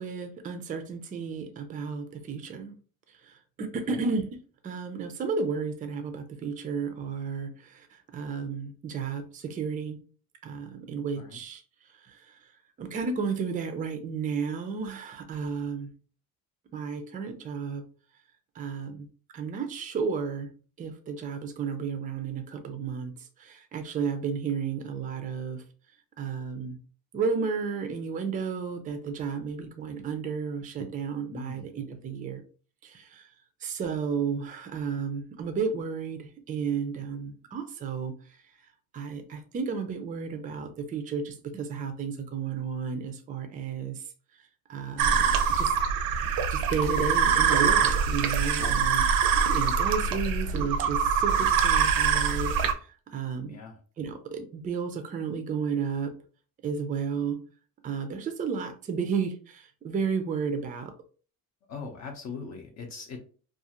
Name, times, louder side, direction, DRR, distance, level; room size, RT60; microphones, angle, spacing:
voice 1, 0.0-2.7 3.3-4.3 4.6-10.0 10.4-11.6 12.1-12.4 12.8-15.9 16.7-17.8 18.6-19.1 19.3-20.5 20.8-23.1 23.4-25.6 26.2-26.8 27.1-32.4 32.8-33.3 33.6-38.1 38.9-44.0 44.7-45.7 46.5-52.5 53.1-53.6 54.0-56.1 56.6-57.4 57.8-60.9, right 5 dB, 25° right, 7 dB, 0.3 m, -32 dB
voice 2, 31.3-31.7 48.5-48.8 53.5-53.8 61.7-63.2, left 5 dB, 55° left, 2 dB, 0.6 m, -41 dB
sound 1, 45.0-52.7, right 7 dB, 85° right, 0.5 m, -24 dB
2.5 x 2.4 x 2.8 m, 0.40 s
cardioid pair, 150°, 34 cm